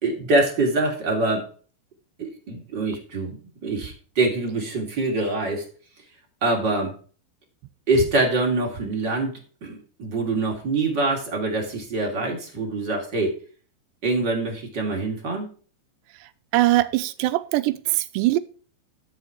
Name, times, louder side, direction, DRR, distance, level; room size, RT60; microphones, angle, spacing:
voice 1, 0.0-1.5 2.2-5.6 6.4-6.9 7.9-9.3 9.6-13.4 14.0-15.5, right 2 dB, 30° right, 2.8 m, -24 dB
voice 2, 16.5-18.4, right 16 dB, 85° right, 2.9 m, -21 dB
12.5 x 7.4 x 4.7 m
omnidirectional pair, 5.1 m